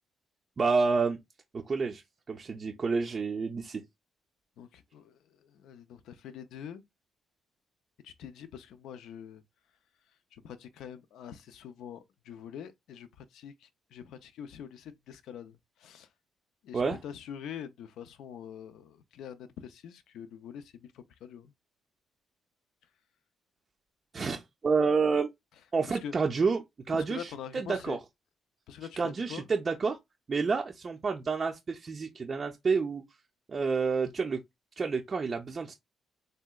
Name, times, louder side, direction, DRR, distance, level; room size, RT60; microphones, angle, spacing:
voice 1, 0.6-1.2 1.7-2.0 2.3-3.8 16.7-17.0 24.1-25.3 25.7-26.6 26.9-28.0 29.0-30.0 30.3-33.0 33.5-34.4 34.8-35.7, right 4 dB, 40° right, 0.4 m, -29 dB
voice 2, 4.6-6.8 8.0-9.4 10.3-16.1 16.6-21.5 25.9-26.1 26.9-28.0 28.7-29.4, left 8 dB, 80° left, 0.4 m, -45 dB
3.3 x 2.8 x 2.2 m
cardioid pair, 90°, 0 cm